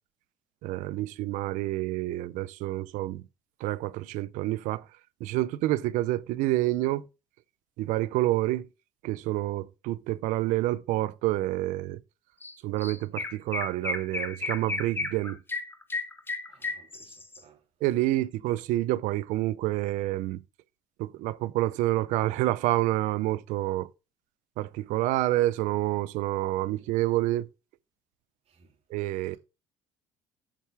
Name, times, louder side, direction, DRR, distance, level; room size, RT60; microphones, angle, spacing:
voice 1, 0.6-3.2 3.6-4.8 5.2-7.0 7.8-8.7 9.0-12.0 12.6-15.4 17.8-20.4 21.0-23.9 24.6-27.5 28.9-29.4, right 16 dB, 75° right, 0.6 m, -28 dB
Chirp tweet, 12.4-12.5 12.8-17.4, left 3 dB, 15° left, 1.1 m, -33 dB
voice 2, 16.5-17.6 18.4-18.5 26.8-26.9 28.5-28.8, right 6 dB, 50° right, 3.2 m, -59 dB
7.5 x 5.8 x 3.4 m
supercardioid pair, 85°, 13 cm